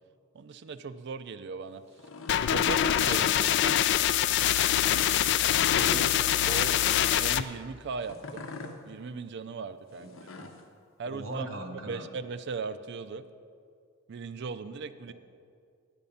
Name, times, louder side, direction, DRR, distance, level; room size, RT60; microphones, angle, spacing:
voice 1, 0.3-1.8 2.5-3.8 6.4-8.4 8.9-10.1 11.0-11.5 11.8-13.2 14.1-15.1, right 4 dB, 55° right, 13 dB, 0.4 m, -38 dB
sound 1, 1.9-2.8 3.5-3.8 4.7-5.1 5.9-6.8 8.0-8.8 10.0-10.6, left 3 dB, 75° left, 0.8 m, -43 dB
sound 2, 2.3-7.4, left 11 dB, 60° left, 0.3 m, -24 dB
voice 2, 5.7-6.2 10.0-10.5 11.1-12.1 15.1-15.2, right 2 dB, 75° right, 4 dB, 1.0 m, -39 dB
10.0 x 5.3 x 7.1 m, 2.2 s
head